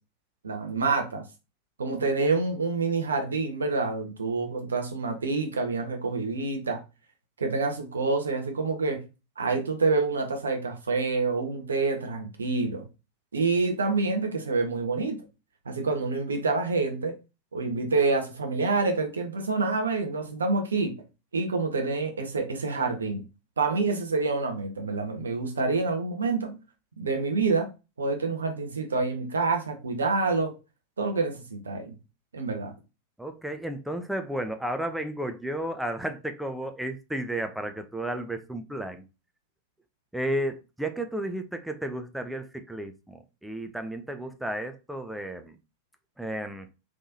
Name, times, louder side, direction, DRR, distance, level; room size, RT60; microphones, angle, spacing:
voice 1, 0.4-1.2 1.8-6.8 7.4-9.0 9.4-12.8 13.3-15.2 15.7-17.2 17.5-21.0 21.3-23.3 23.6-26.6 27.0-27.7 28.0-30.5 31.0-31.9 32.3-32.7, right 3 dB, 70° right, 0.9 m, -27 dB
voice 2, 33.2-39.0 40.1-45.6 46.2-46.7, right 1 dB, 5° right, 0.4 m, -33 dB
3.5 x 3.1 x 2.6 m
figure-of-eight pair, 90°, 0 cm